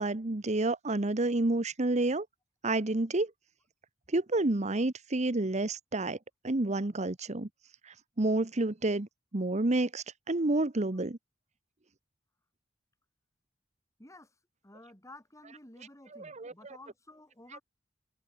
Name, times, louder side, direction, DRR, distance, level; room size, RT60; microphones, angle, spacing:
voice 1, 0.0-2.3 2.6-3.3 4.1-6.2 6.4-7.5 7.9-9.1 9.3-11.2 16.1-16.8, right 2 dB, 40° right, 1.0 m, -29 dB
voice 2, 14.6-17.6, left 2 dB, 15° left, 4.9 m, -52 dB
head